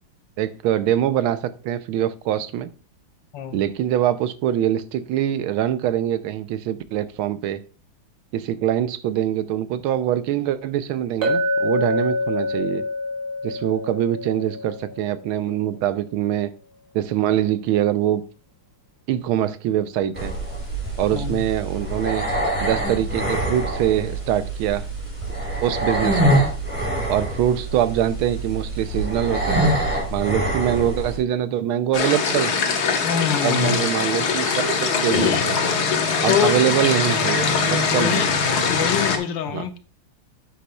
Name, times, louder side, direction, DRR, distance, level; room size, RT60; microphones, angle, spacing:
voice 1, 0.4-2.7 3.5-7.6 8.3-12.8 13.4-16.5 16.9-18.2 19.1-20.3 21.0-22.2 22.6-24.8 25.6-26.4 27.1-29.6 30.1-32.5 33.4-35.6 36.2-38.3 39.5-39.7, right 11 dB, 85° right, 1.5 m, -23 dB
Chink clink, 11.2-15.4, left 1 dB, 60° right, 2.8 m, -26 dB
sound 1, 20.2-31.2, right 1 dB, 5° right, 2.4 m, -25 dB
voice 2, 21.1-21.4 33.0-33.8 35.1-35.5 36.3-36.5 37.7-38.3 38.7-39.8, left 8 dB, 70° left, 1.3 m, -24 dB
sound 2, 31.9-39.2, left 5 dB, 55° left, 1.4 m, -22 dB
9.3 x 8.5 x 2.3 m
omnidirectional pair, 2.3 m